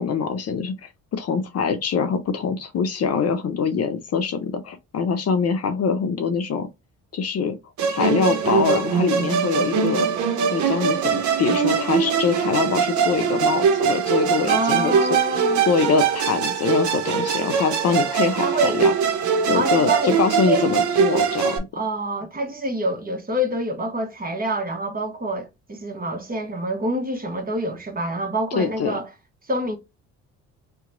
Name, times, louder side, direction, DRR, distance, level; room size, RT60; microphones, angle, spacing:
voice 1, 0.0-6.7 7.1-7.6 7.9-10.1 10.5-15.0 15.7-18.4 18.7-18.9 19.5-21.6 28.5-28.9, left 5 dB, 50° left, 0.7 m, -24 dB
Musical instrument, 7.8-21.6, right 6 dB, 60° right, 0.9 m, -22 dB
voice 2, 14.4-15.6 18.4-18.8 19.5-20.2 20.4-20.6 21.7-29.1 29.5-29.8, right 1 dB, 25° right, 1.1 m, -26 dB
2.9 x 2.3 x 3.8 m
supercardioid pair, 65°, 33 cm